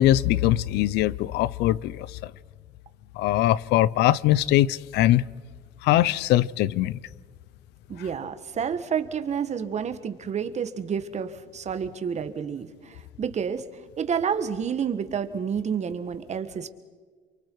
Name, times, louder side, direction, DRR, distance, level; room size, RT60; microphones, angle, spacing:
voice 1, 0.0-2.3 3.2-5.2 5.8-7.0, left 14 dB, 85° left, 0.6 m, -22 dB
voice 2, 7.9-13.6 14.0-16.7, right 7 dB, 40° right, 1.5 m, -29 dB
28.5 x 24.0 x 4.7 m
cardioid pair, 110°, 17 cm